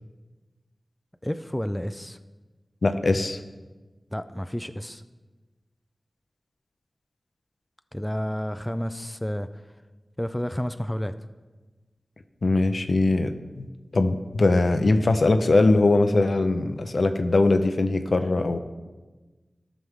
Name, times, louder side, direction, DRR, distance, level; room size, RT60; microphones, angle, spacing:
voice 1, 1.2-2.2 4.1-5.0 7.9-9.5 10.2-11.1, equal, 10° left, 10 dB, 0.3 m, -30 dB
voice 2, 2.8-3.4 12.4-13.7 13.9-18.6, left 2 dB, 70° left, 8 dB, 0.6 m, -21 dB
13.0 x 6.1 x 3.6 m, 1.2 s
wide cardioid pair, 60°, 0 cm